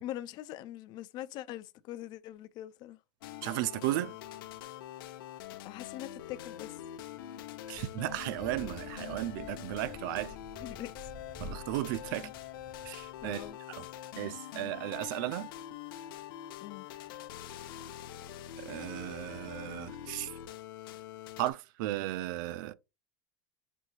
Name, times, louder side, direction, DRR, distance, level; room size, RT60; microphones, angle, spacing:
voice 1, 0.0-3.0 5.6-6.8 10.6-11.1 12.0-12.3 13.2-13.6 16.6-16.9, left 13 dB, 40° left, 0.5 m, -43 dB
sound 1, 3.2-21.5, left 11 dB, 90° left, 0.6 m, -44 dB
voice 2, 3.4-4.2 7.7-10.3 11.4-12.3 12.8-13.8 14.2-15.5 18.6-20.3 21.4-22.7, right 15 dB, 70° right, 0.4 m, -35 dB
sound 2, 7.7-13.5, left 1 dB, 10° right, 0.5 m, -50 dB
6.2 x 2.7 x 2.8 m
supercardioid pair, 155°, 11 cm